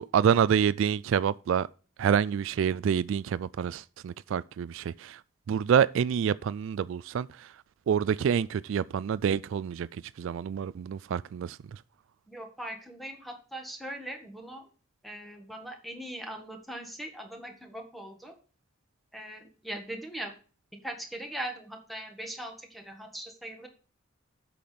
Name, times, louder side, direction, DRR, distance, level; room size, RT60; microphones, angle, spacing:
voice 1, 0.0-1.7 2.0-5.2 5.5-7.5 7.9-11.8, right 8 dB, 65° right, 0.3 m, -27 dB
voice 2, 12.3-14.6 15.0-18.3 19.1-20.3 20.8-23.7, right 1 dB, ahead, 1.7 m, -40 dB
8.5 x 6.0 x 5.2 m
head